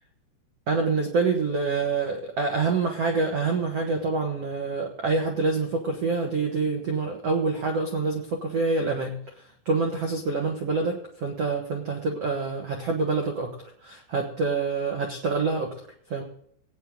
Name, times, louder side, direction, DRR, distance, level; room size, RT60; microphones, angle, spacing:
voice 1, 0.7-13.6 13.8-15.8 16.1-16.2, right 4 dB, 85° right, 2 dB, 1.3 m, -26 dB
18.0 x 9.1 x 3.8 m, 0.65 s
omnidirectional pair, 5.4 m